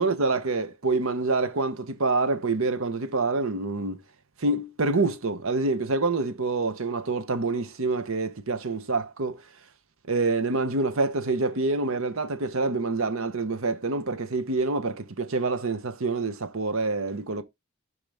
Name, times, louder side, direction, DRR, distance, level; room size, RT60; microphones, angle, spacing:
voice 1, 0.0-4.0 4.4-9.4 10.1-17.4, right 3 dB, 65° right, 0.9 m, -26 dB
11.5 x 4.8 x 3.4 m
head